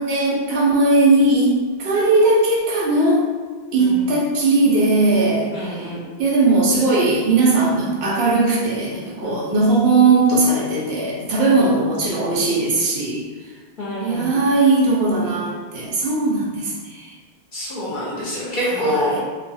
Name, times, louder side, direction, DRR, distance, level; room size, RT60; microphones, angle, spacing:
voice 1, 0.0-1.5 1.8-3.3 3.7-5.9 6.2-13.3 14.0-17.1 18.6-19.2, right 3 dB, 85° right, -4 dB, 0.9 m, -18 dB
voice 2, 5.5-6.0 9.2-9.4 11.5-11.6 13.8-14.3 17.5-19.2, equal, 55° left, -8 dB, 0.7 m, -26 dB
2.3 x 2.3 x 2.6 m, 1.4 s
omnidirectional pair, 1.0 m